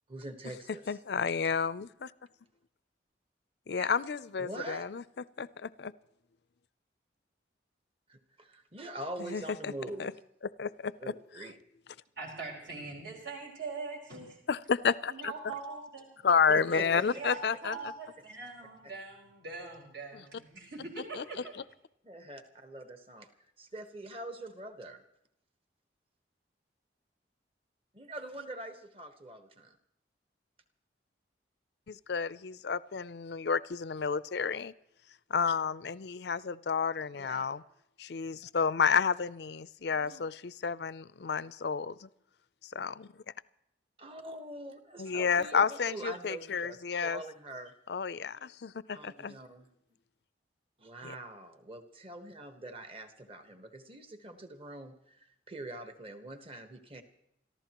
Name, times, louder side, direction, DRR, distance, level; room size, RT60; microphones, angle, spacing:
voice 1, 0.1-0.8 3.8-3.9 4.4-4.8 8.1-10.1 11.0-11.6 16.5-17.0 22.0-23.3 23.6-25.0 27.9-29.8 37.1-37.5 39.9-40.2 44.0-47.7 48.9-49.6 50.8-57.0, right 1 dB, 30° right, 7 dB, 1.3 m, -44 dB
voice 2, 0.9-2.1 3.7-5.0 5.4-5.9 9.2-9.7 10.0-10.1 10.6-10.9 14.5-15.3 16.2-17.8 20.1-20.2 21.1-21.2 31.9-34.7 35.3-37.6 38.0-42.1 42.6-43.1 45.0-47.2 47.9-49.4 51.0-51.1, left 6 dB, 65° left, 17 dB, 0.5 m, -31 dB
voice 3, 12.2-14.4 15.1-16.2 16.8-21.5, right 4 dB, 70° right, -2 dB, 4.8 m, -42 dB
28.5 x 14.5 x 3.0 m, 0.79 s
head